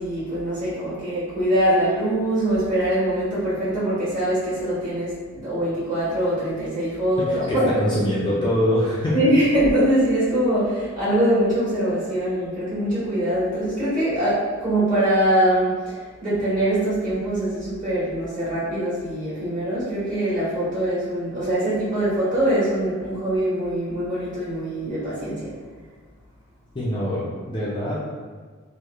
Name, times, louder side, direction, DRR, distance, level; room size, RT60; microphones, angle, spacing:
voice 1, 0.0-8.0 9.1-15.9 16.2-25.5, right 1 dB, 40° right, -11 dB, 1.5 m, -23 dB
voice 2, 7.2-9.3 26.7-28.0, equal, 20° left, -7 dB, 0.4 m, -24 dB
2.9 x 2.0 x 2.3 m, 1.5 s
head